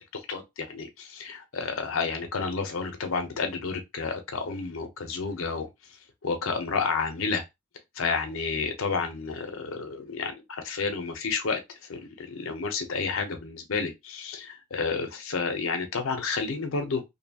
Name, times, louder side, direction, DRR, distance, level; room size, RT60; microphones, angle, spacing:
voice 1, 0.3-5.7 6.2-7.4 8.0-17.0, left 4 dB, 80° left, 0.6 m, -30 dB
2.7 x 2.3 x 2.7 m
head